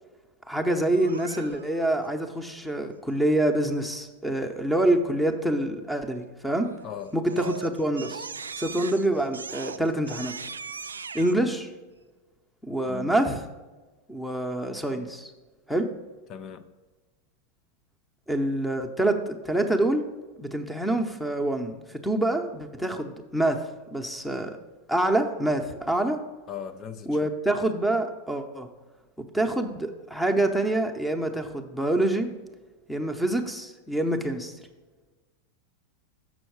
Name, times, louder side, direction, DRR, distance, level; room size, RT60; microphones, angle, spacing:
voice 1, 0.5-6.7 7.1-8.3 8.6-10.3 11.1-11.7 12.6-13.4 14.1-15.3 15.7-15.9 18.3-20.1 20.4-23.6 23.9-24.6 24.9-26.2 27.1-28.7 29.3-32.3 32.9-34.5, right 1 dB, 5° left, 7 dB, 0.9 m, -26 dB
Crying sobbing, 0.9-1.9 6.5-6.9 7.2-11.3, right 5 dB, 85° right, 0.3 m, -39 dB
voice 2, 6.8-7.1 11.4-11.5 12.9-13.1 16.3-16.7 26.5-27.3, left 8 dB, 40° left, 10 dB, 0.6 m, -38 dB
7.3 x 6.2 x 4.7 m, 1.2 s
hypercardioid pair, 90°, 0 cm